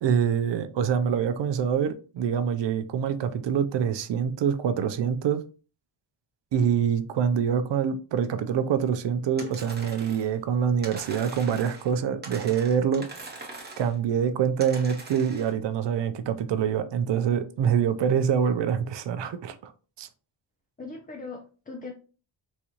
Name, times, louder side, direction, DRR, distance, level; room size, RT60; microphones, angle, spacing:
voice 1, 0.0-5.4 6.5-13.1 13.8-19.7 20.0-20.1, right 7 dB, 60° right, 0.6 m, -25 dB
sound 1, 9.4-10.3 10.8-11.9 12.2-14.0 14.6-15.5, right 3 dB, 20° right, 1.0 m, -42 dB
voice 2, 20.8-21.9, left 3 dB, 20° left, 0.5 m, -39 dB
4.1 x 2.3 x 2.9 m
cardioid pair, 75°, 49 cm